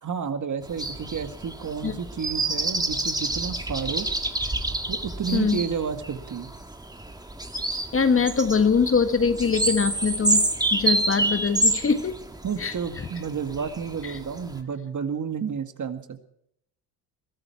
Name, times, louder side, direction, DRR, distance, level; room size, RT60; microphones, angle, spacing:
voice 1, 0.0-4.1 4.9-6.5 12.4-16.2, right 6 dB, 35° right, 8 dB, 2.0 m, -31 dB
sound 1, 0.7-14.6, right 2 dB, 10° right, 1.9 m, -28 dB
voice 2, 7.9-10.4 10.7-12.1 12.6-12.7, left 5 dB, 25° left, 9 dB, 1.5 m, -22 dB
22.0 x 13.0 x 4.6 m, 0.71 s
supercardioid pair, 85°, 49 cm